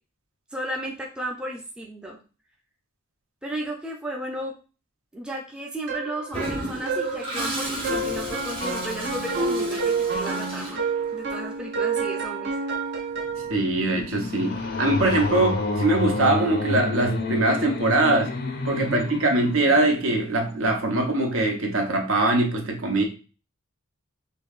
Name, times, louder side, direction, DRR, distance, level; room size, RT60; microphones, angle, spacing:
voice 1, 0.5-2.2 3.4-4.5 5.1-10.8 11.1-12.5 18.7-19.0, right 1 dB, 5° right, -1 dB, 0.4 m, -34 dB
sound 1, 5.9-13.6, right 3 dB, 55° right, 0.5 m, -28 dB
Toilet flush, 6.3-11.4, right 1 dB, 25° right, 0.8 m, -34 dB
sound 2, 13.2-20.5, left 2 dB, 50° left, 0.5 m, -30 dB
voice 2, 13.5-18.3 18.6-23.0, right 2 dB, 75° right, 2 dB, 0.8 m, -22 dB
5.1 x 2.2 x 2.4 m, 0.35 s
head